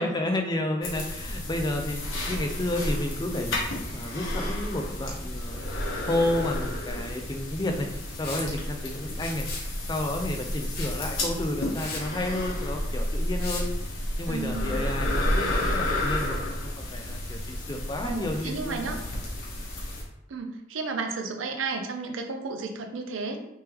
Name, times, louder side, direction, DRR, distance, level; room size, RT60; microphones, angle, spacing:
voice 1, 0.0-3.6 3.9-5.7 6.0-7.9 8.1-9.5 9.9-13.7 14.2-19.0, left 1 dB, 20° left, 4 dB, 0.4 m, -31 dB
sound 1, 0.8-20.0, left 1 dB, 85° left, 1.1 m, -31 dB
Liquid, 8.2-8.5 9.1-9.7 10.7-11.0 11.4-11.5 11.7-12.0 13.4-13.6, left 3 dB, 50° left, 0.9 m, -37 dB
voice 2, 14.3-14.8 18.0-19.0 20.3-23.5, right 4 dB, 80° right, 5 dB, 0.5 m, -33 dB
3.4 x 3.3 x 3.0 m, 0.86 s
head